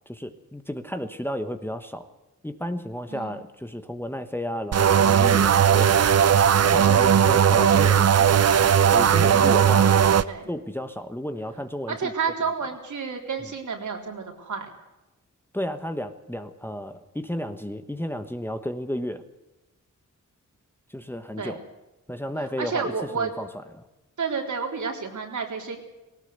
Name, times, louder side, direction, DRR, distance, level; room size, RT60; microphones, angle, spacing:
voice 1, 0.1-2.1 2.4-6.1 6.6-8.4 8.9-10.0 10.5-12.1 15.5-19.2 20.9-21.6 22.1-23.5 23.7-23.9, equal, 5° left, 8 dB, 1.2 m, -33 dB
sound 1, 4.7-10.2, right 8 dB, 55° right, 0.7 m, -18 dB
voice 2, 11.9-14.7 21.4-21.6 22.6-23.3 24.2-25.8, right 5 dB, 70° right, 2 dB, 3.8 m, -30 dB
19.0 x 18.5 x 8.1 m, 1.0 s
wide cardioid pair, 115°, 31 cm